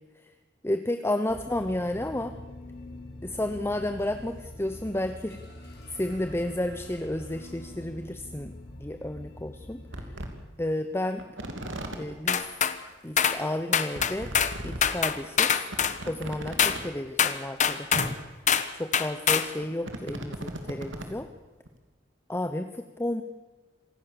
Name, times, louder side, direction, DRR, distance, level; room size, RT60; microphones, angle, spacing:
voice 1, 0.6-2.3 3.2-5.4 5.9-8.5 8.8-10.0 10.6-11.2 11.9-12.4 13.0-14.3 14.6-15.5 16.1-18.2 18.7-21.3 22.3-23.2, left 1 dB, 15° left, 8 dB, 1.0 m, -31 dB
sound 1, 1.3-10.4, left 1 dB, 60° left, 5.6 m, -45 dB
sound 2, 7.7-7.8 8.9-9.0 9.5-9.6 9.9-10.3 11.2-12.0 13.1-13.2 13.4-13.5 13.9-14.8 15.2-15.3 15.7-16.8 17.6-17.7 17.9-18.1 19.4-21.1 21.7-21.8, right 1 dB, 80° right, 3.0 m, -37 dB
sound 3, 12.3-12.8 13.2-13.4 13.7-14.6 14.8-16.0 16.6-16.8 17.2-18.1 18.5-18.7 18.9-19.5, left 7 dB, 40° left, 1.2 m, -24 dB
26.5 x 16.5 x 7.0 m, 1.3 s
head